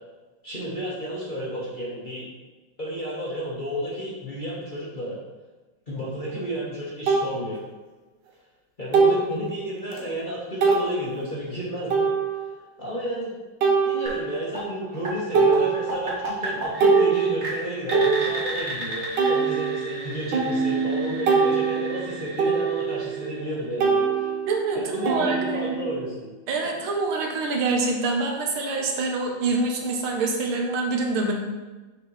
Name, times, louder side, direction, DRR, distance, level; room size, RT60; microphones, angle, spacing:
voice 1, 0.4-2.2 2.8-5.2 5.9-7.6 8.8-12.1 12.8-13.3 13.8-24.3 24.7-26.3, equal, 30° left, -7 dB, 1.0 m, -32 dB
sound 1, 6.2-6.3 7.1-7.3 8.9-9.3 9.9-10.0 10.6-10.9 11.9-12.5 13.6-14.5 14.9-15.1 15.3-16.2 16.6-18.7 19.2-23.5 23.8-26.1, right 5 dB, 70° right, 1.4 m, -23 dB
sound 2, 14.1-23.9, right 1 dB, 40° right, 1.2 m, -35 dB
voice 2, 24.5-25.8 26.5-31.3, right 3 dB, 85° right, 2 dB, 1.7 m, -26 dB
6.7 x 5.0 x 3.1 m, 1.2 s
omnidirectional pair, 2.3 m